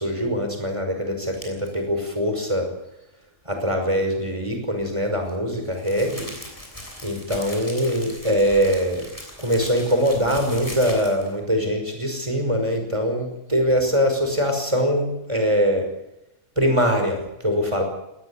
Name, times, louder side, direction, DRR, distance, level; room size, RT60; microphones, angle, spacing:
voice 1, 0.0-2.7 3.5-6.3 7.0-9.1 9.4-15.9 16.6-17.8, equal, 20° right, 4 dB, 5.7 m, -23 dB
sound 1, 1.3-1.7 4.8-11.4, left 1 dB, 20° left, 7.1 m, -39 dB
20.0 x 19.5 x 8.6 m, 0.88 s
omnidirectional pair, 1.7 m